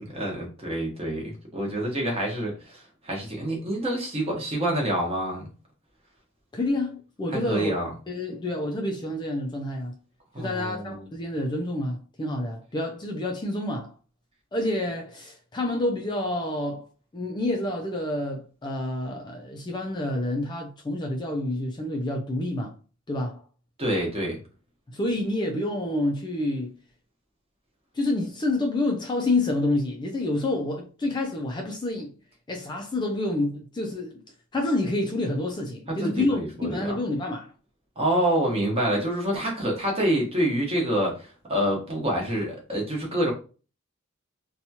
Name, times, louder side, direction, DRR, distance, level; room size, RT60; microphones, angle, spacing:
voice 1, 0.0-5.5 7.4-7.9 10.3-11.0 23.8-24.4 35.9-36.9 38.0-43.3, right 1 dB, 30° right, 1.0 m, -27 dB
voice 2, 6.5-7.8 8.1-10.0 10.4-13.9 14.5-16.9 17.1-22.7 23.1-23.4 24.9-26.7 27.9-32.1 32.5-34.2 34.5-37.5, left 1 dB, 20° left, 0.4 m, -28 dB
2.8 x 2.2 x 2.8 m
head